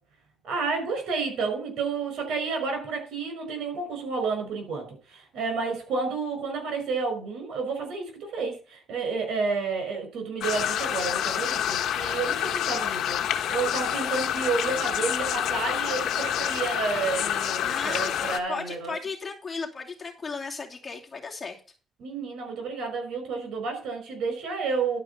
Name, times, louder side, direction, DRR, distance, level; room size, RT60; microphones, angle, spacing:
voice 1, 0.4-4.9 5.1-13.2 13.5-18.9 22.0-25.0, right 4 dB, 80° right, 5.4 m, -30 dB
sound 1, 10.4-18.4, left 10 dB, 80° left, 1.2 m, -28 dB
voice 2, 17.6-21.6, left 4 dB, 30° left, 2.7 m, -35 dB
11.5 x 5.4 x 5.6 m
cardioid pair, 90°, 0 cm